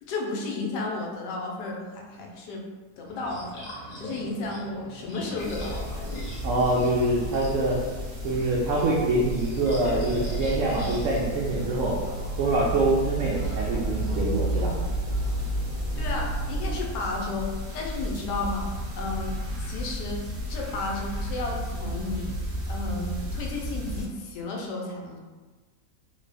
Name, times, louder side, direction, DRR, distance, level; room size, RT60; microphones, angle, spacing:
voice 1, 0.0-2.6 3.0-6.1 16.0-18.7 19.0-20.2 20.5-22.3 22.7-25.2, left 3 dB, 75° left, 0 dB, 1.2 m, -33 dB
sound 1, 3.1-11.6, equal, 60° left, 1.1 m, -40 dB
sound 2, 5.4-24.1, left 1 dB, 55° right, 1.0 m, -33 dB
voice 2, 6.4-7.8 8.2-12.0 12.4-14.7, right 2 dB, 90° right, -3 dB, 0.6 m, -25 dB
sound 3, 9.7-16.8, right 7 dB, 35° left, 0.4 m, -34 dB
3.1 x 2.3 x 3.3 m, 1.3 s
omnidirectional pair, 1.9 m